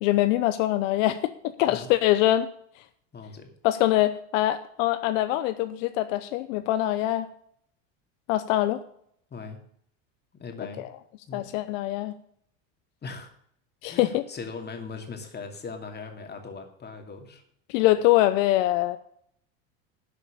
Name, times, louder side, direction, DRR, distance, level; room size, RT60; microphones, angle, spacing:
voice 1, 0.0-1.3 1.6-2.5 3.6-7.3 8.3-8.8 11.3-12.1 13.8-14.2 17.7-19.0, left 15 dB, 75° left, 11 dB, 0.8 m, -23 dB
voice 2, 3.1-3.5 9.3-9.6 10.3-10.8 11.3-11.4 13.0-13.3 13.8-17.4, left 4 dB, 25° left, 4 dB, 2.5 m, -39 dB
11.5 x 5.4 x 8.5 m, 0.67 s
supercardioid pair, 110°, 39 cm